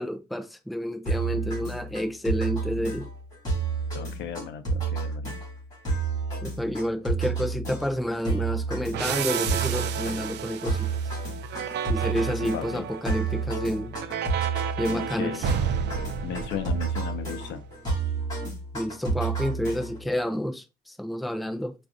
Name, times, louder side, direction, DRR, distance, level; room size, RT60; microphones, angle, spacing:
voice 1, 0.0-3.1 6.4-10.9 11.9-14.0 14.8-15.5 18.7-21.7, equal, ahead, 0.4 m, -29 dB
sound 1, 1.1-20.2, right 4 dB, 20° left, 2.4 m, -30 dB
voice 2, 3.9-5.4 12.4-12.9 14.9-15.5 16.2-17.6, left 9 dB, 75° left, 0.6 m, -36 dB
sound 2, 8.9-17.4, right 8 dB, 65° right, 0.4 m, -33 dB
4.7 x 2.5 x 2.6 m
cardioid pair, 160°, 19 cm